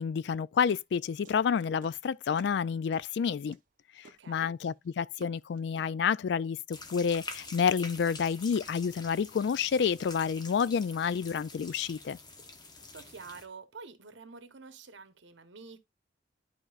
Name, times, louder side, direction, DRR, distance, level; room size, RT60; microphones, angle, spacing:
voice 1, 0.0-3.6 4.0-12.2, left 6 dB, 65° left, 0.3 m, -29 dB
sound 1, 0.7-2.0 2.3-2.7 2.9-6.1, right 3 dB, 45° right, 0.9 m, -55 dB
voice 2, 4.0-4.6 12.8-15.8, right 4 dB, 85° right, 1.1 m, -48 dB
sound 2, 6.7-13.5, left 3 dB, 20° left, 0.9 m, -46 dB
11.5 x 4.3 x 2.5 m
head